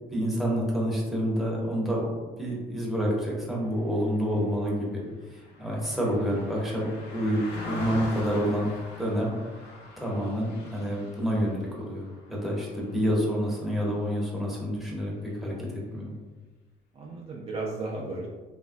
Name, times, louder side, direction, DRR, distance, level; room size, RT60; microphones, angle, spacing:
voice 1, 0.1-2.1 2.4-5.0 5.3-8.7 9.0-9.3 10.0-16.1, equal, ahead, -4 dB, 0.8 m, -28 dB
Car passing by, 4.1-13.7 14.1-14.3, left 2 dB, 75° left, 0.8 m, -43 dB
voice 2, 16.9-18.3, right 3 dB, 35° right, -3 dB, 0.4 m, -36 dB
3.1 x 2.2 x 2.6 m, 1.3 s
cardioid pair, 110°, 17 cm